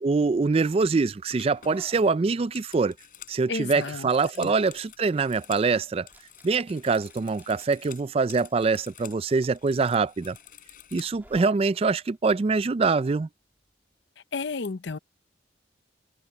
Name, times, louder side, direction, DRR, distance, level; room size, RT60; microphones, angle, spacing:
voice 1, 0.0-2.9 3.3-6.1 6.4-10.4 10.9-13.3, right 4 dB, 30° right, 0.3 m, -24 dB
sound 1, 1.0-14.0, right 1 dB, 10° right, 2.3 m, -57 dB
sound 2, 1.3-5.7 6.0-9.2 9.5-11.4, left 10 dB, 45° left, 4.8 m, -49 dB
voice 2, 3.5-4.1 4.4-4.5 14.3-15.0, left 4 dB, 65° left, 0.7 m, -32 dB
head